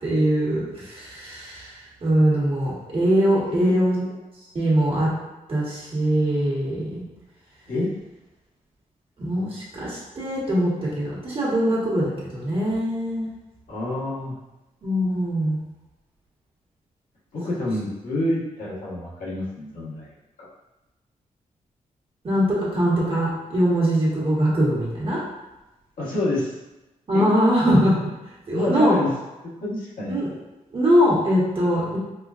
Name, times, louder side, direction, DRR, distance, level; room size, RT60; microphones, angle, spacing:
voice 1, 0.0-4.0 4.5-5.1 5.5-7.0 9.2-13.3 14.8-15.6 22.2-25.2 27.1-28.1 28.5-28.9 30.1-30.3 30.7-32.0, equal, 40° right, -6 dB, 1.3 m, -22 dB
voice 2, 3.3-3.8 7.7-7.9 13.7-14.4 17.3-20.1 20.4-20.5 26.0-26.5 27.1-27.3 28.5-29.1 29.4-30.2, left 1 dB, 90° left, -7 dB, 1.3 m, -27 dB
4.9 x 2.2 x 2.5 m, 1.0 s
wide cardioid pair, 110°, 14 cm